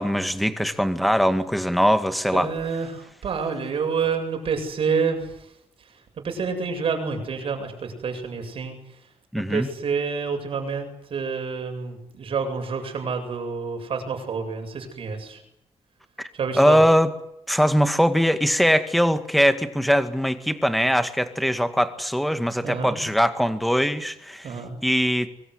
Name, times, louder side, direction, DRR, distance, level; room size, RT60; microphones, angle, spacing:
voice 1, 0.0-2.5 9.3-9.7 16.2-16.3 16.6-17.1 17.5-24.5 24.8-25.3, equal, ahead, 10 dB, 2.0 m, -21 dB
voice 2, 2.3-5.5 5.8-9.0 9.3-15.4 16.3-16.8 22.6-23.0 24.4-24.8, right 5 dB, 55° right, 5 dB, 7.8 m, -28 dB
24.0 x 24.0 x 9.8 m, 0.78 s
wide cardioid pair, 145°, 11 cm